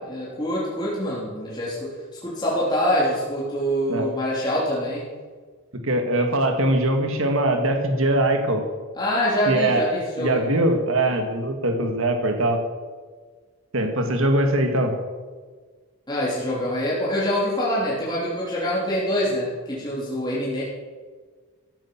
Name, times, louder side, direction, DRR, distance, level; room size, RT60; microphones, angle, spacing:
voice 1, 0.0-1.9 2.2-5.1 8.9-10.4 16.1-20.6, equal, 20° left, -7 dB, 3.4 m, -25 dB
voice 2, 5.8-8.7 9.5-9.8 10.2-12.6 13.7-14.9, right 1 dB, 65° right, 5 dB, 1.8 m, -22 dB
14.5 x 8.9 x 7.1 m, 1.5 s
head